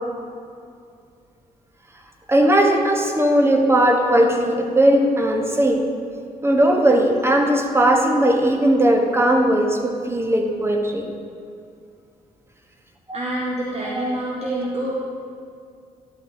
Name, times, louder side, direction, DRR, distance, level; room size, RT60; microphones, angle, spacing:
voice 1, 2.3-5.8 6.4-11.1 14.0-14.1, right 1 dB, 15° right, 2 dB, 1.2 m, -18 dB
voice 2, 13.1-14.9, right 1 dB, 35° right, -4 dB, 1.4 m, -26 dB
11.5 x 8.0 x 2.8 m, 2.3 s
figure-of-eight pair, 40°, 19 cm